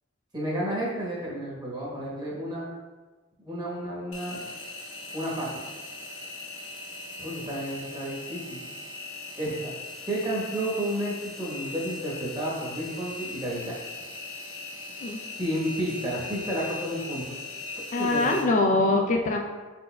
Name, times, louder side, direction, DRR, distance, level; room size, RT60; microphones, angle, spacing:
voice 1, 0.3-2.7 3.4-4.4 5.1-5.5 7.2-8.7 9.4-9.7 10.1-13.7 15.4-17.4 18.0-18.4, right 1 dB, 20° right, -5 dB, 1.0 m, -31 dB
Engine, 4.1-18.4, left 3 dB, 75° left, 1.0 m, -39 dB
voice 2, 17.9-19.4, left 2 dB, 35° left, 2 dB, 0.3 m, -23 dB
5.2 x 4.2 x 2.2 m, 1.3 s
head